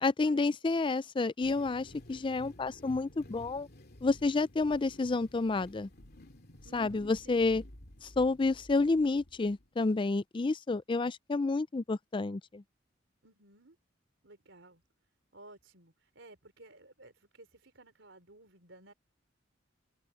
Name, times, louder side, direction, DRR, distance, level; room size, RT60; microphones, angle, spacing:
voice 1, 0.0-3.7 4.0-5.9 6.7-7.6 8.0-12.6, left 3 dB, 25° left, 0.4 m, -30 dB
sound 1, 1.4-9.9, left 1 dB, 55° left, 2.6 m, -53 dB
voice 2, 2.1-2.5 6.6-7.5 13.2-13.8 14.2-14.8 15.3-18.9, right 2 dB, 75° right, 4.1 m, -56 dB
open air
head